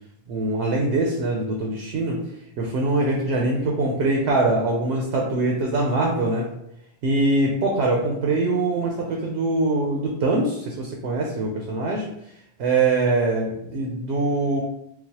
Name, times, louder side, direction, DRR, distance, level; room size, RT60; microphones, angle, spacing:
voice 1, 0.3-2.2 2.6-6.4 7.0-12.1 12.6-14.6, right 2 dB, 70° right, 0 dB, 0.8 m, -23 dB
3.9 x 2.3 x 2.8 m, 0.78 s
omnidirectional pair, 1.2 m